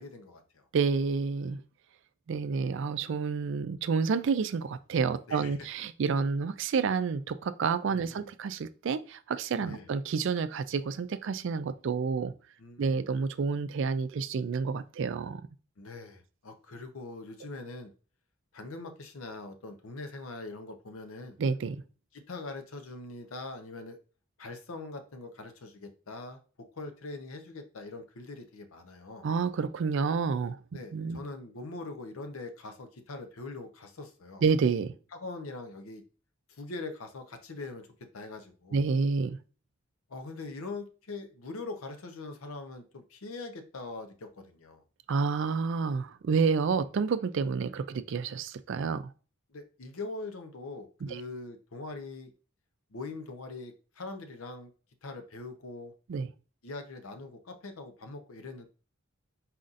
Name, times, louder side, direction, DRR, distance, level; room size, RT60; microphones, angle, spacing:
voice 1, 0.0-0.6 5.3-5.7 7.9-8.3 9.6-9.9 12.6-13.1 15.8-17.9 18.5-21.4 22.1-24.0 24.4-26.4 26.7-29.3 30.7-34.4 35.1-36.0 36.5-37.9 38.1-38.8 40.1-44.8 49.5-52.3 52.9-54.7 55.0-55.9 56.6-58.7, left 3 dB, 80° left, 0.7 m, -42 dB
voice 2, 0.7-1.6 2.3-12.3 12.8-15.4 21.4-21.8 29.2-30.6 30.9-31.2 34.4-34.9 38.7-39.4 45.1-49.1 51.1-51.2 56.1-56.3, right 5 dB, 60° right, 0.3 m, -29 dB
4.2 x 4.0 x 2.5 m
head